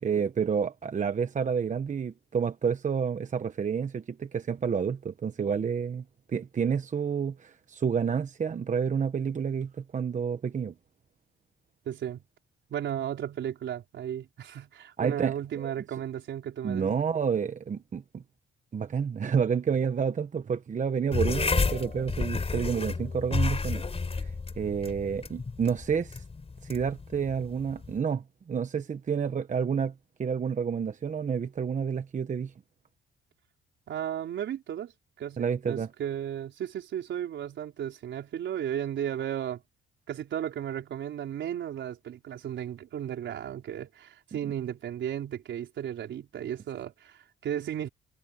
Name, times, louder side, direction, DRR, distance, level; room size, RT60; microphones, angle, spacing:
voice 1, 0.0-10.7 15.0-15.7 16.6-18.2 18.7-26.2 26.6-32.5 35.4-35.9 44.4-44.5, right 6 dB, 40° right, 1.1 m, -29 dB
voice 2, 11.9-12.2 12.7-16.9 33.9-34.9 35.2-39.6 40.1-47.9, right 10 dB, 70° right, 4.4 m, -34 dB
sound 1, 21.1-28.0, left 4 dB, 30° left, 4.5 m, -31 dB
cardioid pair, 90°, 20 cm